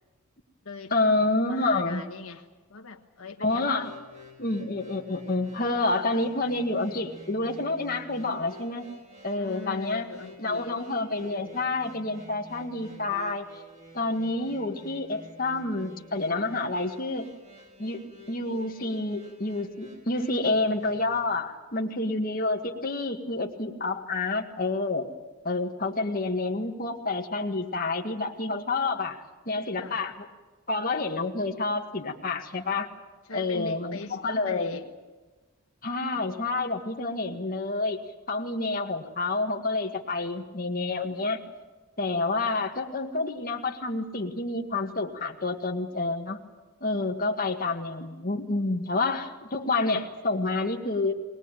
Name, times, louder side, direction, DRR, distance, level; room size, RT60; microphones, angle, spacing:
voice 1, 0.9-2.0 3.4-3.9 4.4-8.8 9.2-10.1 10.4-13.5 13.9-17.3 17.8-18.0 18.3-25.0 25.4-30.3 30.7-32.9 33.3-34.8 35.8-38.0 38.3-41.4 42.0-46.4 46.8-51.1, left 2 dB, 40° left, 1 dB, 1.8 m, -28 dB
voice 2, 1.5-3.9 9.3-10.8 29.8-30.0 33.3-34.9 42.5-42.6, left 4 dB, 85° left, 4 dB, 1.5 m, -40 dB
sound 1, 3.4-21.2, left 1 dB, 30° right, 3.1 m, -49 dB
22.0 x 19.5 x 9.1 m, 1.2 s
head